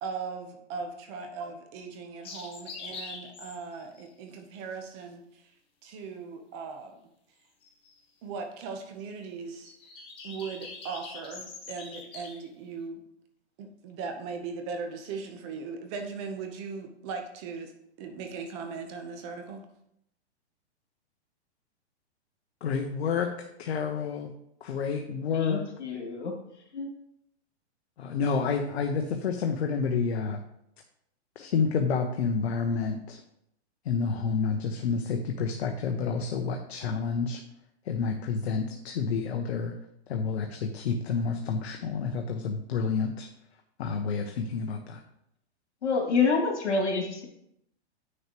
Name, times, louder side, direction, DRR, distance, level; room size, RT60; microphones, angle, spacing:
voice 1, 0.0-5.5 5.8-7.0 8.2-9.7 10.2-13.0 13.6-17.7 18.0-19.7, right 5 dB, 25° right, 5 dB, 0.8 m, -38 dB
sound 1, 2.2-4.0 7.6-8.0 9.6-12.4, left 4 dB, 15° left, 1.0 m, -43 dB
voice 2, 22.6-24.3 24.6-25.6 28.0-30.4 31.4-33.2 33.8-37.4 37.8-39.7 40.1-43.3 43.8-45.0, left 5 dB, 65° left, 4 dB, 0.9 m, -29 dB
voice 3, 25.3-26.3 26.7-26.9 45.8-47.2, left 4 dB, 85° left, 1 dB, 2.4 m, -27 dB
8.9 x 6.4 x 3.0 m, 0.77 s
hypercardioid pair, 155°, 34 cm